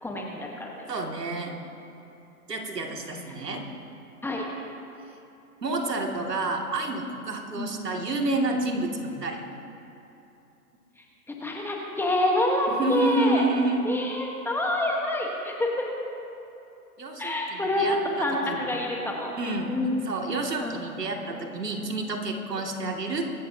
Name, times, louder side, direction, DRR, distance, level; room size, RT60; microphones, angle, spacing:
voice 1, 0.0-1.0 3.2-3.3 4.2-4.5 7.5-7.7 11.0-13.4 13.8-15.9 17.2-19.3 19.7-20.0 20.6-20.8 21.3-21.5, left 1 dB, 5° left, -1 dB, 1.3 m, -27 dB
voice 2, 0.9-1.5 2.5-3.6 5.6-9.4 12.7-13.8 17.0-18.6 19.4-19.7 20.1-23.3, right 2 dB, 85° right, 1 dB, 2.5 m, -29 dB
25.0 x 13.5 x 2.8 m, 2.8 s
hypercardioid pair, 130°, 47 cm